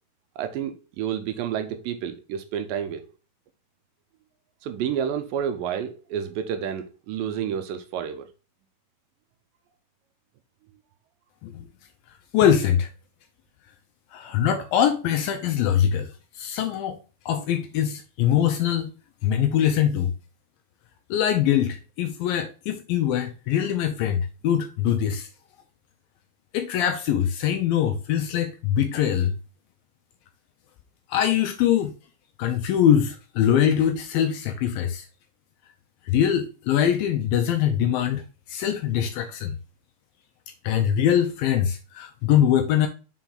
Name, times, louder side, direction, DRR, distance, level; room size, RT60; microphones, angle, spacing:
voice 1, 0.4-3.0 4.6-8.3, right 8 dB, 80° right, 2.1 m, -30 dB
voice 2, 12.3-12.9 14.1-17.0 17.3-18.9 19.2-20.1 21.1-25.3 26.5-29.3 31.1-31.9 32.4-35.1 36.1-38.2 38.5-39.6 40.6-42.9, left 9 dB, 80° left, 2.3 m, -23 dB
6.2 x 4.5 x 3.8 m
omnidirectional pair, 4.4 m